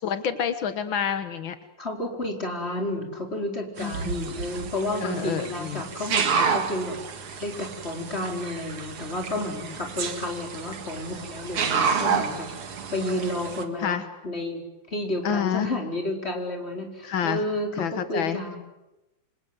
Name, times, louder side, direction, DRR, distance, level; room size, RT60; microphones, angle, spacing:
voice 1, 0.0-1.6 3.8-4.3 5.0-5.8 9.4-9.5 13.8-14.0 15.2-15.7 17.0-17.4 17.8-18.4, left 8 dB, 75° left, 10 dB, 1.1 m, -28 dB
voice 2, 1.8-14.0 14.2-14.6 14.9-18.6, left 1 dB, 15° left, 2 dB, 4.6 m, -31 dB
sound 1, 3.8-13.6, right 6 dB, 45° right, 2.2 m, -30 dB
28.5 x 25.5 x 8.0 m, 0.99 s
omnidirectional pair, 4.1 m